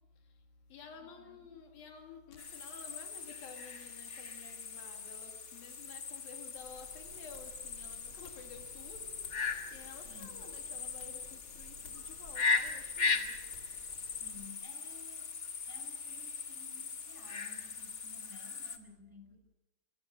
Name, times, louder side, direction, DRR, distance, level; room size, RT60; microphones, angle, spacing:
voice 1, 0.1-14.3 16.4-16.5, left 5 dB, 75° left, 4.0 m, -53 dB
voice 2, 0.9-1.5 10.0-10.4 14.2-15.3 15.7-19.4, left 3 dB, 5° right, 4.7 m, -56 dB
sound 1, 2.4-18.8, left 4 dB, 50° left, 1.0 m, -39 dB
sound 2, 6.5-14.5, left 1 dB, 25° left, 3.8 m, -57 dB
25.5 x 22.5 x 6.5 m
omnidirectional pair, 4.2 m